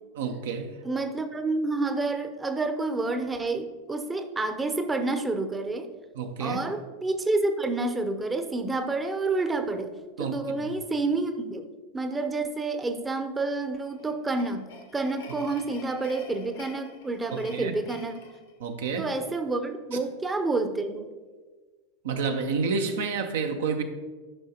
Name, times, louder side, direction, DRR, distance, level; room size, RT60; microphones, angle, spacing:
voice 1, 0.1-0.7 6.1-6.6 10.2-10.7 17.3-17.7 18.6-19.1 22.0-23.8, right 5 dB, 70° right, 5 dB, 0.8 m, -29 dB
voice 2, 0.8-5.9 6.4-9.9 10.2-11.7 11.9-18.3 19.0-21.1, right 3 dB, 15° right, 7 dB, 0.7 m, -29 dB
sound 1, 13.7-19.2, left 3 dB, 75° left, 1.2 m, -49 dB
12.0 x 5.4 x 2.9 m, 1.4 s
hypercardioid pair, 90°, 0 cm